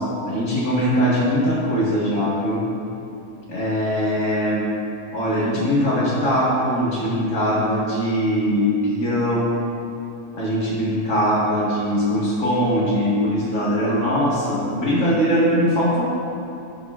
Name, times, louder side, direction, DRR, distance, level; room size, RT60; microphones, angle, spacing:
voice 1, 0.0-2.7 3.5-4.7 5.1-9.6 10.3-16.0, equal, 60° left, -7 dB, 2.0 m, -21 dB
11.5 x 6.5 x 2.4 m, 2.7 s
omnidirectional pair, 1.5 m